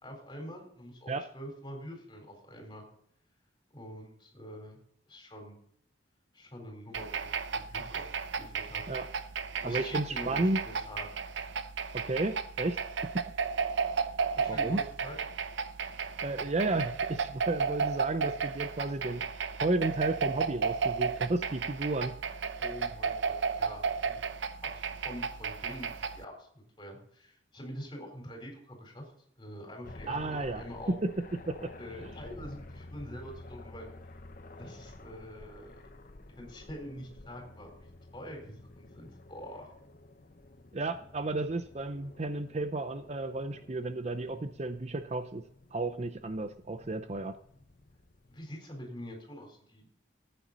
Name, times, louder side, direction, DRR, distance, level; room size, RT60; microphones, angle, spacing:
voice 1, 0.0-2.9 3.7-4.8 5.1-5.6 6.3-8.8 9.6-11.1 14.3-15.2 22.6-24.2 24.6-29.0 29.4-30.9 31.8-33.9 34.5-35.9 36.4-37.7 38.1-39.7 48.3-49.9, equal, 25° left, 1 dB, 4.2 m, -45 dB
sound 1, 6.9-26.2, right 5 dB, 75° right, 0.7 m, -34 dB
voice 2, 9.6-10.6 11.9-12.8 14.5-14.8 15.9-19.2 19.6-22.5 30.1-30.6 30.9-31.1 31.5-31.7 40.7-45.4 45.7-47.4, right 2 dB, 35° right, 10 dB, 0.5 m, -33 dB
sound 2, 29.8-48.4, left 2 dB, 45° left, 0.9 m, -51 dB
14.5 x 9.1 x 4.1 m, 0.65 s
head